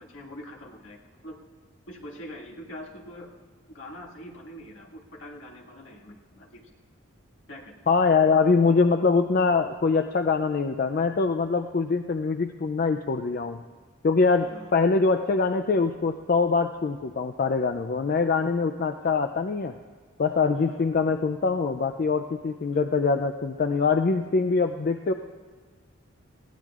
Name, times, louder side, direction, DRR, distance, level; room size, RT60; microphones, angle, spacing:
voice 1, 0.0-1.4 1.9-3.3 3.7-6.6 7.5-7.7 14.4-14.8 20.5-20.8 22.7-22.8, left 1 dB, 70° left, -1 dB, 1.8 m, -44 dB
voice 2, 7.9-13.6 14.0-19.7 20.2-25.1, left 4 dB, 45° left, 6 dB, 0.4 m, -23 dB
20.5 x 16.5 x 2.4 m, 1.6 s
head